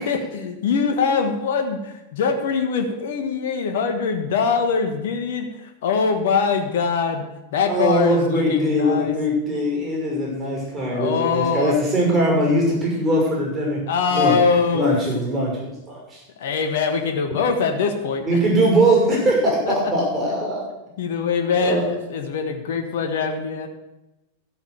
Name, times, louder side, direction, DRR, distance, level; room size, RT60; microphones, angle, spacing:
voice 1, 0.0-5.5 5.8-7.2 7.5-9.2 10.8-11.7 13.9-14.9 16.4-18.2 19.7-19.8 21.0-23.7, left 5 dB, 55° left, 5 dB, 1.4 m, -23 dB
voice 2, 7.7-14.4 14.7-16.2 18.2-20.7 21.6-21.9, right 1 dB, 20° right, -2 dB, 6.0 m, -21 dB
13.5 x 8.0 x 6.7 m, 0.98 s
figure-of-eight pair, 90°, 0 cm